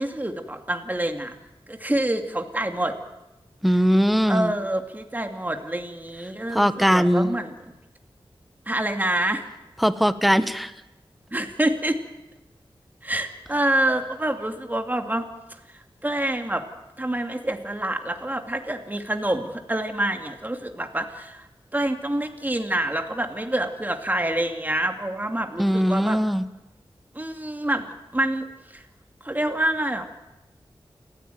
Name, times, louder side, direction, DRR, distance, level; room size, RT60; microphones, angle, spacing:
voice 1, 0.0-1.4 1.7-3.0 4.3-7.5 8.7-9.5 11.3-12.0 13.0-16.6 17.0-21.5 21.7-26.2 27.1-28.8 29.2-30.1, right 1 dB, 20° right, 5 dB, 2.5 m, -27 dB
voice 2, 3.6-4.5 6.5-7.3 9.8-10.7 25.6-26.4, equal, ahead, 11 dB, 1.2 m, -20 dB
29.0 x 15.0 x 9.3 m, 0.99 s
wide cardioid pair, 90°, 10 cm